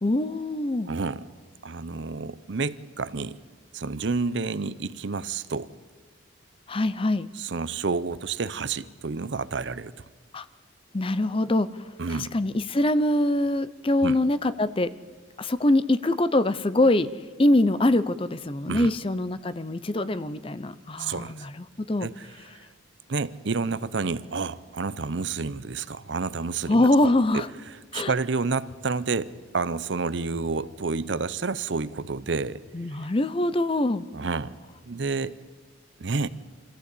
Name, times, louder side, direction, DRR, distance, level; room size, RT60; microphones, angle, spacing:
voice 1, 0.0-0.9 6.7-7.3 10.3-10.5 10.9-11.7 12.1-14.9 15.4-17.1 17.4-22.1 26.7-27.5 27.9-28.1 32.7-34.0, left 1 dB, 25° left, 15 dB, 0.5 m, -24 dB
voice 2, 0.9-1.3 1.6-3.4 3.7-5.7 7.4-10.0 12.0-12.3 14.0-14.2 18.7-18.9 21.0-21.5 22.0-22.3 22.5-22.6 23.1-26.9 27.3-27.4 27.9-32.6 34.1-34.6 34.8-35.4 36.0-36.3, right 4 dB, 60° right, 16 dB, 0.7 m, -29 dB
sound 1, 25.3-25.4 26.0-26.1 27.0-27.1 27.7-27.8 28.7-28.8 29.3-29.4 30.3-30.4 31.0-31.1 32.0-32.1 32.7-32.8, left 2 dB, 85° left, 1.6 m, -50 dB
24.5 x 15.0 x 8.4 m, 1.4 s
head